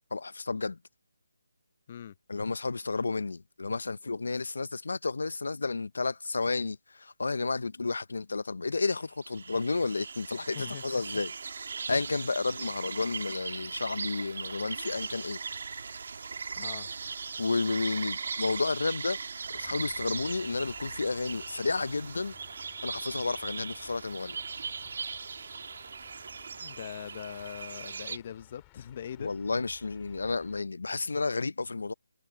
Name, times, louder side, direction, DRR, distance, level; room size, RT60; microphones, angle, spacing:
voice 1, 0.1-0.8 2.3-11.3 11.6-15.4 17.4-19.2 19.5-22.3 22.8-24.4 29.2-31.9, left 3 dB, 75° left, 0.5 m, -31 dB
sound 1, 8.7-28.2, right 5 dB, 60° right, 2.1 m, -39 dB
voice 2, 10.5-11.0 16.6-16.9 26.6-29.3, left 9 dB, 35° left, 0.8 m, -41 dB
sound 2, 19.5-30.6, left 35 dB, 15° left, 4.3 m, -58 dB
figure-of-eight pair, 165°, 0 cm